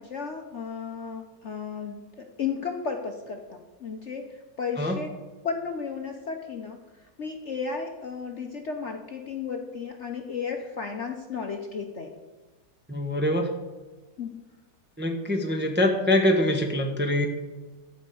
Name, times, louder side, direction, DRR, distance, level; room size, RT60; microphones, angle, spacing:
voice 1, 0.0-5.1 5.4-12.1 14.2-14.4, left 5 dB, 50° left, 3 dB, 1.0 m, -34 dB
voice 2, 12.9-13.5 15.0-17.3, left 1 dB, 10° right, 3 dB, 0.9 m, -24 dB
13.0 x 5.3 x 8.3 m, 1.2 s
omnidirectional pair, 2.0 m